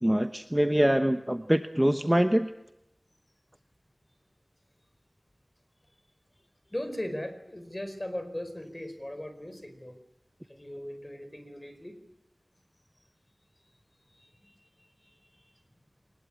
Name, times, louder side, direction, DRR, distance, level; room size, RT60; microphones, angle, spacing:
voice 1, 0.0-2.5, equal, 10° right, 8 dB, 1.0 m, -24 dB
voice 2, 6.7-10.0 10.5-12.0 14.2-14.3, left 1 dB, 25° left, 8 dB, 4.8 m, -38 dB
23.0 x 20.5 x 8.6 m, 0.85 s
wide cardioid pair, 50°, 0 cm